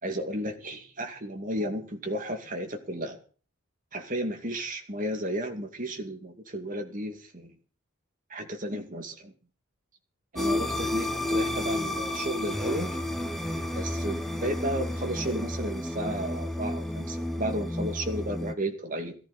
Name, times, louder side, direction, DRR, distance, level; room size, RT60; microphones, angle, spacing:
voice 1, 0.0-3.2 3.9-7.5 8.3-9.3 10.3-13.0 13.7-19.2, right 1 dB, 40° right, 4 dB, 2.4 m, -33 dB
sound 1, 10.4-18.5, left 1 dB, ahead, 1.2 m, -31 dB
18.5 x 14.5 x 4.2 m, 0.40 s
head